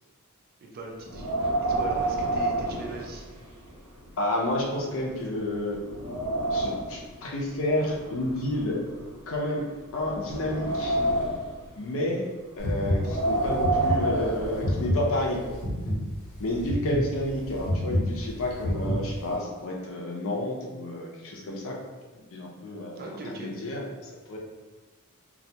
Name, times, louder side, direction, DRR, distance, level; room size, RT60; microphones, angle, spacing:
voice 1, 0.6-1.3 1.7-3.3 23.0-23.5, right 2 dB, 45° right, 0 dB, 0.4 m, -39 dB
Wind, 1.0-3.7 4.0-4.1 4.8-4.9 5.4-7.0 7.9-9.4 10.0-11.6 12.8-15.0, right 2 dB, 80° right, 0.7 m, -29 dB
voice 2, 4.2-5.8 6.5-8.8 9.3-9.6 9.9-11.0 11.8-12.2 12.6-15.5 16.4-21.8 22.3-23.0 23.4-23.9 24.3-24.4, left 1 dB, 65° left, -1 dB, 0.5 m, -30 dB
sound 1, 12.6-19.3, equal, 85° left, 0.8 m, -29 dB
2.3 x 2.1 x 2.7 m, 1.3 s
head